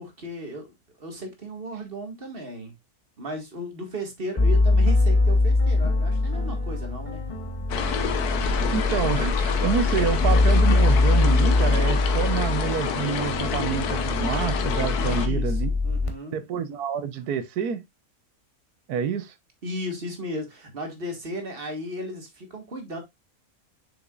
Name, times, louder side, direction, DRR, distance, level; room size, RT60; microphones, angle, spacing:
voice 1, 0.0-2.8 3.2-7.2 15.0-16.4 19.6-23.0, equal, 40° right, 1.9 m, -35 dB
sound 1, 4.4-16.1, left 2 dB, 25° left, 0.9 m, -22 dB
sound 2, 7.7-15.3, left 7 dB, 85° left, 1.4 m, -29 dB
voice 2, 8.7-15.7 16.3-17.8 18.9-19.3, right 8 dB, 85° right, 1.4 m, -28 dB
6.9 x 5.8 x 2.4 m
omnidirectional pair, 1.6 m